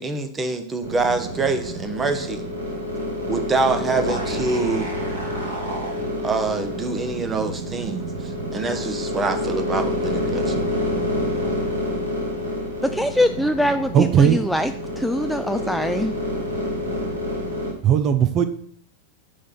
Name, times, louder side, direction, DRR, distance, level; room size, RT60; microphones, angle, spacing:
voice 1, 0.0-2.5 3.3-4.9 6.2-10.6, right 3 dB, 15° right, 9 dB, 1.0 m, -25 dB
sound 1, 0.8-17.7, equal, 65° right, 2.5 m, -28 dB
voice 2, 12.9-14.7 15.0-16.1, left 1 dB, ahead, 7 dB, 0.3 m, -22 dB
voice 3, 13.9-14.5 17.8-18.4, right 8 dB, 35° right, 10 dB, 0.6 m, -17 dB
10.0 x 3.5 x 5.8 m, 0.66 s
figure-of-eight pair, 90°, 0 cm